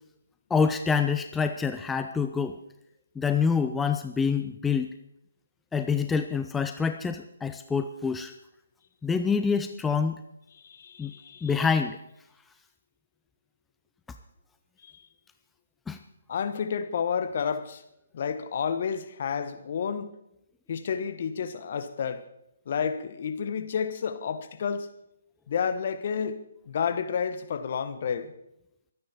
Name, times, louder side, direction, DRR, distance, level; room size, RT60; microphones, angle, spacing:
voice 1, 0.5-2.6 3.2-4.9 5.7-8.3 9.0-10.2 11.0-11.1 11.4-12.0 15.9-16.0, left 5 dB, 10° left, 0.5 m, -26 dB
voice 2, 10.6-11.5 14.8-14.9 16.3-17.8 18.1-20.2 20.7-22.2 22.7-24.9 25.5-28.3, left 7 dB, 50° left, 1.4 m, -30 dB
23.5 x 9.5 x 4.4 m
figure-of-eight pair, 140°, 0 cm